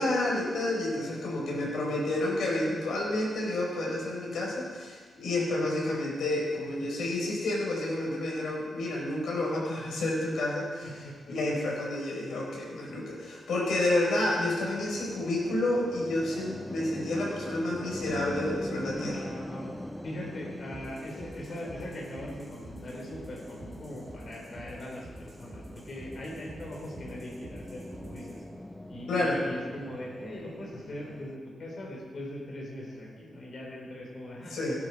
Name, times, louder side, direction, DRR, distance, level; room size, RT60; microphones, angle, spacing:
voice 1, 0.0-10.9 11.3-19.3 29.1-29.4 34.5-34.8, left 1 dB, 85° left, -3 dB, 4.7 m, -30 dB
voice 2, 0.9-2.0 10.8-11.6 18.9-19.7 20.0-28.4 28.9-34.8, left 1 dB, 45° left, -2 dB, 4.1 m, -41 dB
sound 1, 14.2-31.4, left 1 dB, 5° left, 0.7 m, -43 dB
sound 2, 20.7-28.4, right 2 dB, 30° right, 3.5 m, -49 dB
17.5 x 10.0 x 4.8 m, 1.6 s
wide cardioid pair, 145°, 0 cm